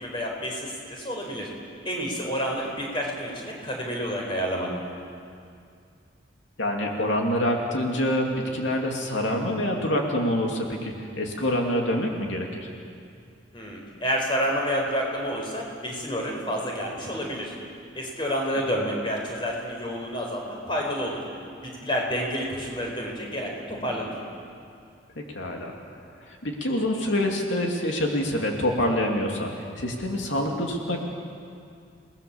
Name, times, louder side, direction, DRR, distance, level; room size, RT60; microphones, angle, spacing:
voice 1, 0.0-1.5 1.8-4.7 13.5-17.5 17.9-21.2 21.6-24.1, equal, 25° left, -1 dB, 4.8 m, -29 dB
voice 2, 6.6-12.7 25.2-25.7 26.3-29.5 29.8-31.0, left 1 dB, 85° left, 0 dB, 2.8 m, -26 dB
29.0 x 20.0 x 7.3 m, 2.4 s
head